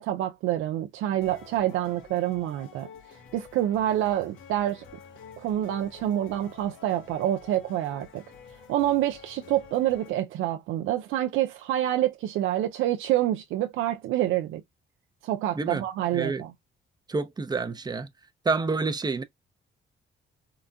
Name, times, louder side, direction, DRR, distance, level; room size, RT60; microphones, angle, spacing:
voice 1, 0.0-2.9 3.3-4.8 5.4-8.2 8.7-14.6 15.2-16.5, right 12 dB, 85° right, 0.4 m, -27 dB
sound 1, 1.2-10.1, left 7 dB, 80° left, 1.3 m, -49 dB
voice 2, 17.1-18.1 18.4-19.2, right 4 dB, 20° right, 0.7 m, -28 dB
3.9 x 2.1 x 2.3 m
cardioid pair, 90°, 20 cm